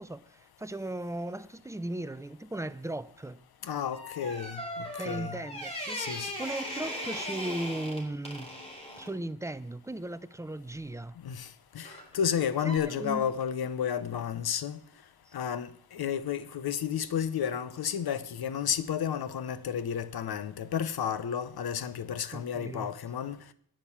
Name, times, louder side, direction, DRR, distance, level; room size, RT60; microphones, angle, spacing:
voice 1, 0.0-3.4 5.0-8.5 9.0-11.2 12.6-13.3 15.3-15.4 22.3-22.9, right 1 dB, 10° right, 0.5 m, -37 dB
voice 2, 3.6-5.4 5.9-6.3 11.2-11.5 11.7-14.8 15.3-23.4, left 8 dB, 75° left, 0.8 m, -32 dB
sound 1, 3.9-9.1 11.8-12.1 12.7-12.8, equal, 15° left, 3.4 m, -38 dB
9.9 x 9.0 x 7.2 m
wide cardioid pair, 115°, 38 cm